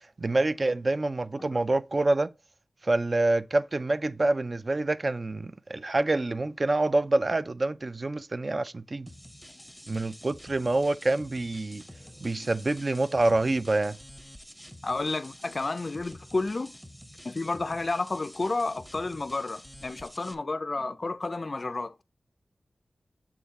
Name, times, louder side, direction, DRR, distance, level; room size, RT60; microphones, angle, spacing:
voice 1, 0.2-2.3 2.8-9.1 9.9-11.8 12.2-14.0, right 2 dB, 45° right, 0.3 m, -26 dB
sound 1, 9.1-20.3, equal, ahead, 0.7 m, -48 dB
voice 2, 14.8-16.7 17.2-22.0, left 3 dB, 45° left, 0.3 m, -31 dB
7.0 x 3.6 x 4.1 m
wide cardioid pair, 85°, 0 cm